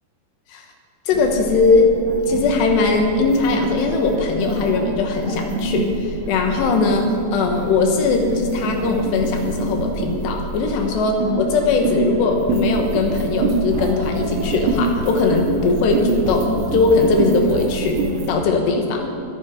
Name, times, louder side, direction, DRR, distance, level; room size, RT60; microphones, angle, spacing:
voice 1, 1.1-1.9 2.3-18.0 18.3-19.1, left 4 dB, 75° left, 3 dB, 3.4 m, -19 dB
sound 1, 1.1-18.3, right 3 dB, 80° right, 1.8 m, -26 dB
21.5 x 9.3 x 3.7 m, 2.6 s
omnidirectional pair, 5.0 m